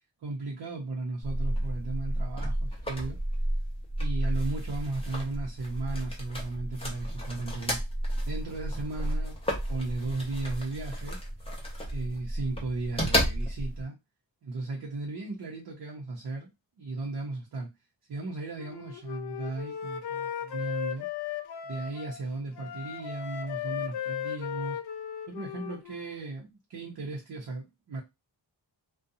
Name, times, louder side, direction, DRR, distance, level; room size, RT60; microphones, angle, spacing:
voice 1, 0.2-3.2 4.0-7.8 8.2-9.4 9.7-11.2 11.9-14.0 14.4-16.5 16.8-17.7 18.1-21.1 21.6-24.8 25.3-28.0, right 3 dB, 55° right, 0.7 m, -36 dB
sound 1, 1.2-13.8, equal, 15° left, 0.7 m, -32 dB
Wind instrument woodwind instrument, 18.6-22.2 22.5-26.2, left 9 dB, 60° left, 0.5 m, -36 dB
2.6 x 2.2 x 2.6 m
wide cardioid pair, 170°, 44 cm